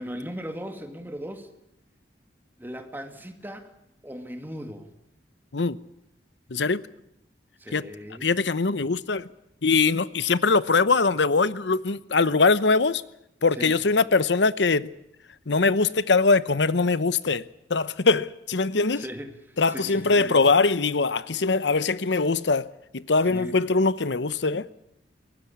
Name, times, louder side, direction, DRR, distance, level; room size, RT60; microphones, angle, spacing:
voice 1, 0.0-1.5 2.6-3.7 4.0-4.9 7.6-8.3 13.5-13.8 18.9-20.5 23.3-23.6, equal, 10° right, 2.2 m, -38 dB
voice 2, 6.5-6.8 7.7-7.8 8.2-9.2 9.6-13.0 13.4-14.9 15.5-17.4 17.7-19.0 19.6-22.7 22.9-24.7, left 4 dB, 75° left, 0.9 m, -22 dB
23.5 x 19.0 x 8.6 m
head